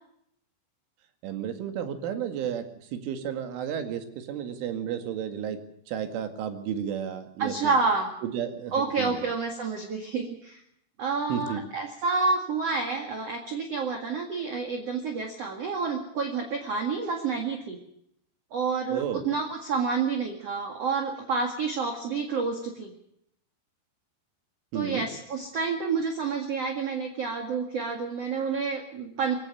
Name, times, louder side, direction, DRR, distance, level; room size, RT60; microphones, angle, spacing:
voice 1, 1.2-2.6 2.9-5.6 5.9-7.7 8.2-9.2 11.3-11.6 18.9-19.2 24.7-25.1, right 9 dB, 85° right, 7 dB, 4.5 m, -32 dB
voice 2, 7.4-8.1 8.7-10.6 11.0-17.8 18.5-22.9 24.7-29.3, right 4 dB, 45° right, 4 dB, 2.2 m, -29 dB
23.0 x 17.0 x 6.9 m, 0.73 s
omnidirectional pair, 5.5 m